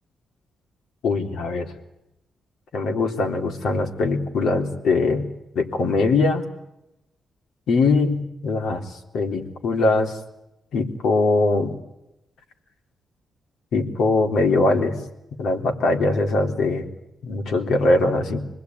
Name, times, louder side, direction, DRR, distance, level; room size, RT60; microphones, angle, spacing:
voice 1, 1.0-1.7 2.7-5.3 5.6-6.5 7.7-8.8 9.1-10.1 10.7-11.8 13.7-15.0 15.4-16.9 17.2-18.4, left 3 dB, 75° left, 4 dB, 3.8 m, -21 dB
27.0 x 20.5 x 9.6 m, 0.89 s
wide cardioid pair, 150°, 0 cm